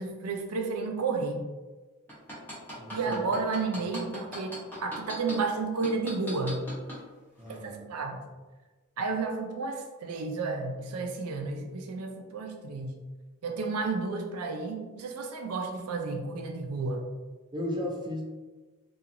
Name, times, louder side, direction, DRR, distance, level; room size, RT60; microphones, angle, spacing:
voice 1, 0.0-1.4 2.9-6.6 7.5-8.2 9.0-13.0 13.4-17.1, right 4 dB, 85° right, 4 dB, 0.4 m, -32 dB
sound 1, 2.1-5.3 5.8-7.0 7.5-7.6, equal, 10° left, 0.8 m, -39 dB
voice 2, 2.8-3.2 4.0-4.1 7.4-7.9 17.5-18.2, left 1 dB, 20° right, -1 dB, 0.4 m, -35 dB
2.8 x 2.3 x 2.5 m, 1.3 s
head